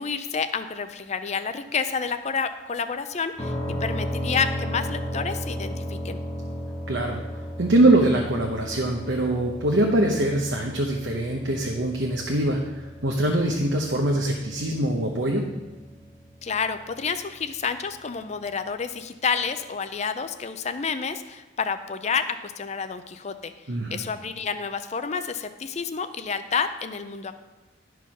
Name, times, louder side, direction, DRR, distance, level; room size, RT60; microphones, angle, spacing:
voice 1, 0.0-3.6 3.8-6.2 16.4-23.5 23.9-27.3, left 5 dB, 35° left, 10 dB, 0.5 m, -29 dB
sound 1, 3.4-17.1, equal, 20° left, 1.4 m, -35 dB
voice 2, 6.9-7.2 7.6-12.7 13.0-15.5 23.7-24.0, right 1 dB, 70° right, 1 dB, 0.9 m, -23 dB
11.5 x 4.7 x 6.0 m, 1.2 s
head